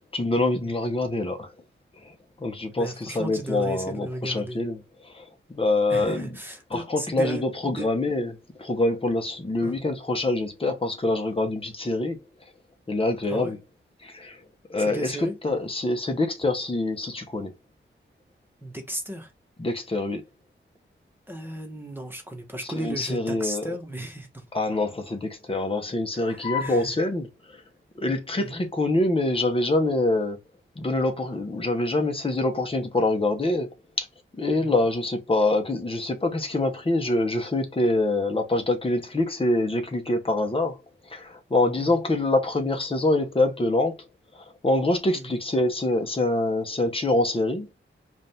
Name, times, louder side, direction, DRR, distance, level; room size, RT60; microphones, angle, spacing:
voice 1, 0.1-1.5 2.0-2.1 2.4-6.3 6.7-8.3 8.6-12.2 12.9-13.6 14.0-14.4 14.7-15.2 15.4-17.5 19.6-20.2 22.8-23.6 24.5-27.3 28.0-30.4 30.7-33.7 34.0-34.1 34.3-40.8 41.1-44.0 44.3-47.7, left 2 dB, 25° left, 1.2 m, -25 dB
voice 2, 2.8-4.6 5.9-7.9 9.6-9.8 13.2-13.6 14.8-15.4 18.6-19.3 21.3-24.4 26.1-27.0 28.4-28.6 34.6-34.9 41.8-42.1 45.1-45.4, right 1 dB, 10° right, 1.3 m, -35 dB
5.0 x 2.7 x 3.5 m
wide cardioid pair, 95°, 20 cm